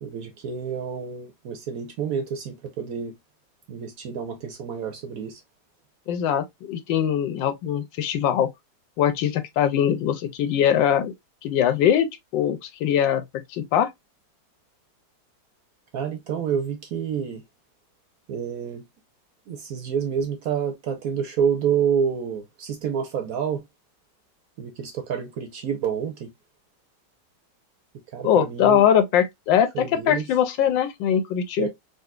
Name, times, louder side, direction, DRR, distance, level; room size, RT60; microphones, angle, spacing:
voice 1, 0.0-3.1 3.7-5.4 15.9-17.4 18.3-18.8 19.5-23.6 24.6-26.3 28.1-28.8 29.7-30.2 31.6-31.7, right 7 dB, 70° right, 0.9 m, -28 dB
voice 2, 6.1-8.5 9.0-11.1 11.4-13.2 13.5-13.9 28.2-31.7, left 9 dB, 85° left, 1.4 m, -22 dB
3.9 x 2.4 x 2.4 m
omnidirectional pair, 2.0 m